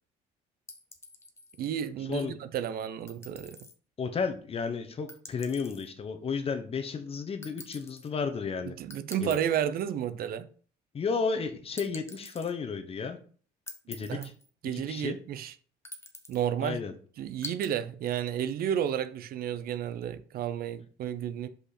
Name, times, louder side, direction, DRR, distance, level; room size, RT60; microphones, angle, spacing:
sound 1, 0.7-1.7 3.1-3.7 5.1-5.9 7.4-8.1 8.9-9.6 11.8-12.5 13.7-14.5 15.9-16.5 17.4-17.7, left 2 dB, 15° left, 1.0 m, -46 dB
voice 1, 1.6-3.6 8.8-10.5 14.1-14.3 14.6-15.5 16.3-16.8 17.2-21.5, right 9 dB, 60° right, 0.6 m, -32 dB
voice 2, 4.0-8.7 9.2-9.4 10.9-13.2 13.9-14.3 14.7-15.2 16.6-16.9, left 5 dB, 35° left, 1.0 m, -33 dB
5.2 x 5.0 x 4.3 m
cardioid pair, 110°, 17 cm